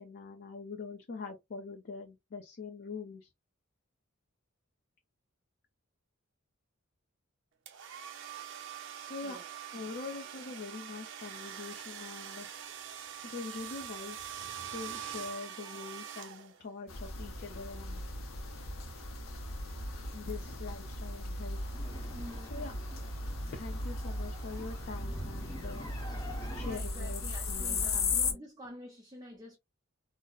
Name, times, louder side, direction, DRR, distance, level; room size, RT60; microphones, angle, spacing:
voice 1, 0.0-3.3 9.0-9.4 9.7-12.7 13.2-18.0 20.1-21.6 22.4-22.8 23.5-25.9 26.5-28.4, left 4 dB, 50° left, 0.5 m, -44 dB
sound 1, 7.7-16.8, right 9 dB, 65° right, 0.6 m, -44 dB
voice 2, 9.2-9.5 22.1-22.5 24.6-24.8 26.6-29.6, equal, 20° right, 0.5 m, -48 dB
sound 2, 16.9-28.3, left 3 dB, 85° left, 0.9 m, -37 dB
sound 3, 21.7-26.7, equal, 20° left, 0.8 m, -46 dB
3.9 x 2.0 x 2.3 m
head